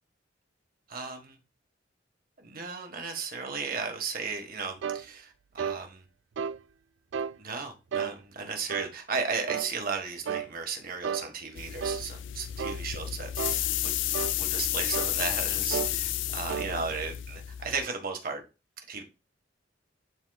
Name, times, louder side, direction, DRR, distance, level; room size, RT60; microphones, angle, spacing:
voice 1, 0.9-1.4 2.4-6.0 7.4-18.4 18.9-19.0, right 5 dB, 50° right, 1.6 m, -35 dB
sound 1, 4.8-5.0 5.6-5.8 6.4-6.6 7.1-7.4 7.9-8.1 8.7-8.9 9.5-9.7 10.3-10.5 11.0-11.3 11.8-12.0 12.6-12.8 13.4-13.6 14.1-14.4 14.9-15.2 15.7-15.9 16.5-16.7, right 7 dB, 70° right, 0.3 m, -32 dB
sound 2, 11.5-17.9, left 13 dB, 80° left, 0.4 m, -31 dB
12.0 x 4.1 x 2.4 m
head